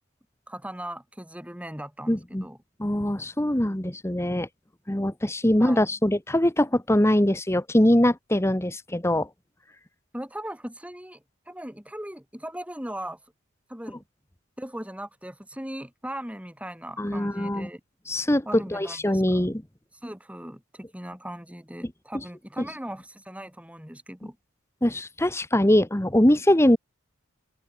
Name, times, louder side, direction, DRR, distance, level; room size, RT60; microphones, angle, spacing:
voice 1, 0.5-2.6 5.6-5.8 10.1-11.2 11.5-13.2 13.7-14.0 14.6-17.8 18.5-19.4 20.0-24.4, right 1 dB, 5° right, 3.7 m, -38 dB
voice 2, 2.1-2.5 2.8-4.5 4.9-9.3 17.0-17.7 18.1-19.6 24.8-26.8, left 1 dB, 15° left, 1.2 m, -22 dB
open air
head